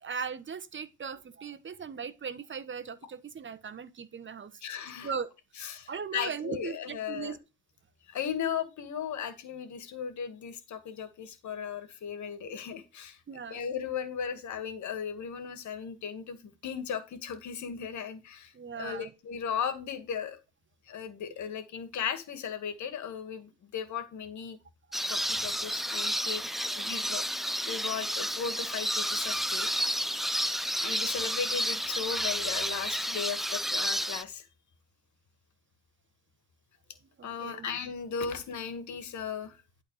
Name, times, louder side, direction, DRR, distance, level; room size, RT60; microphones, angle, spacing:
voice 1, 0.0-4.6 5.0-5.3 5.6-7.4 13.3-13.6 18.5-19.1 26.4-26.9 37.2-37.7, right 6 dB, 40° right, 1.2 m, -39 dB
voice 2, 4.6-5.1 5.6-7.4 8.1-13.2 13.5-20.4 20.9-24.6 25.1-26.4 26.8-29.7 30.8-34.5 37.2-39.6, left 7 dB, 70° left, 2.2 m, -36 dB
sound 1, 24.9-34.2, equal, ahead, 0.5 m, -31 dB
11.5 x 4.3 x 4.9 m
cardioid pair, 90°, 30 cm